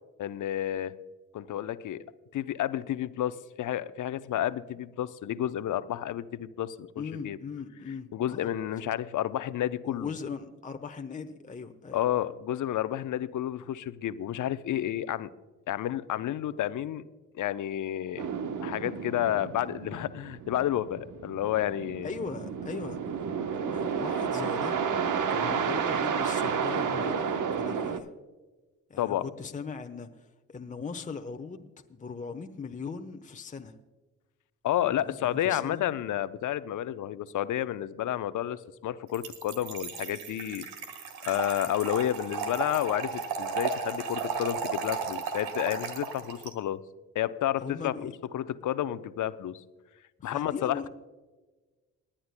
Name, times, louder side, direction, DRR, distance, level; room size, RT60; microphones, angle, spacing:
voice 1, 0.2-0.9 1.3-2.0 2.3-7.4 8.1-10.1 11.9-15.3 15.7-17.0 17.3-18.3 18.6-22.1 29.0-29.2 34.6-40.7 41.2-46.8 47.1-49.6 50.2-50.9, left 12 dB, 50° left, 14 dB, 0.8 m, -31 dB
voice 2, 7.0-8.5 9.8-12.0 22.0-23.2 23.5-24.8 25.3-28.1 28.9-33.8 35.0-35.8 46.2-46.3 47.6-48.1 50.2-50.9, left 5 dB, 20° left, 5 dB, 1.0 m, -39 dB
sound 1, 18.2-28.0, right 6 dB, 50° right, 1.1 m, -31 dB
Trickle dribble / Fill (with liquid), 39.1-46.5, right 6 dB, 70° right, 1.7 m, -34 dB
28.5 x 10.0 x 2.2 m, 1.2 s
hypercardioid pair, 45°, 39 cm